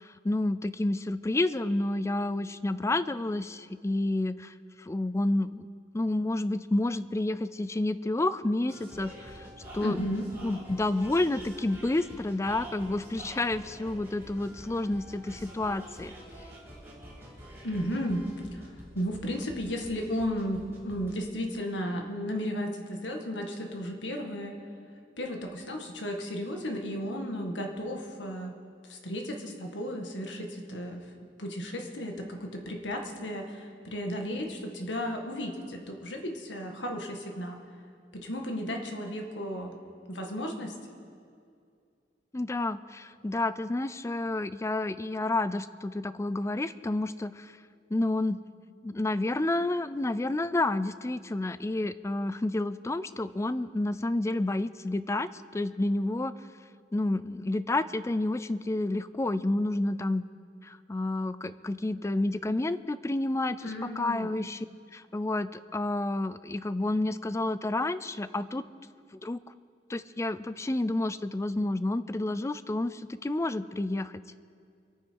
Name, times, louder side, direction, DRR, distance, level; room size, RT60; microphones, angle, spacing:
voice 1, 0.0-5.7 5.9-9.5 9.7-10.0 10.4-16.1 42.3-47.5 47.9-48.4 48.8-56.3 56.9-60.2 60.6-64.6 64.9-68.6 69.1-69.4 69.9-74.2, left 2 dB, 15° left, 15 dB, 0.4 m, -30 dB
sound 1, 8.7-21.2, equal, 15° right, 4.3 m, -47 dB
voice 2, 9.8-10.3 17.6-18.7 18.9-24.6 25.2-28.5 28.9-31.1 31.4-37.6 38.1-39.7 40.1-40.7 63.6-64.3, equal, 90° left, 3 dB, 1.9 m, -34 dB
26.0 x 9.3 x 4.7 m, 2.3 s
head